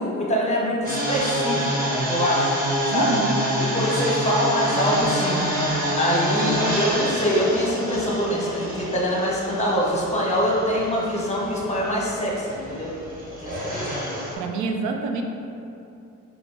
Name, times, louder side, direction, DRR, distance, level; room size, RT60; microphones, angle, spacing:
voice 1, 0.0-1.8 2.1-2.6 2.9-3.2 3.6-5.4 5.9-12.9 13.4-14.1, equal, 20° left, -3 dB, 0.9 m, -24 dB
sound 1, 0.8-14.3, equal, 30° right, 1.1 m, -27 dB
voice 2, 2.9-3.3 14.4-15.2, right 4 dB, 75° right, 3 dB, 0.5 m, -26 dB
4.8 x 2.0 x 3.4 m, 2.6 s
cardioid pair, 90°, 30 cm